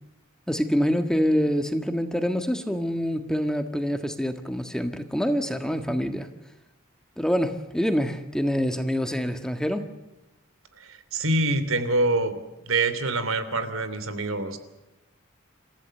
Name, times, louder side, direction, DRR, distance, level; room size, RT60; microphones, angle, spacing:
voice 1, 0.5-6.3 7.2-9.9, equal, 5° left, 7 dB, 1.6 m, -26 dB
voice 2, 10.8-12.4 12.6-14.6, right 2 dB, 80° right, 11 dB, 3.1 m, -25 dB
28.0 x 15.0 x 7.9 m, 1.0 s
head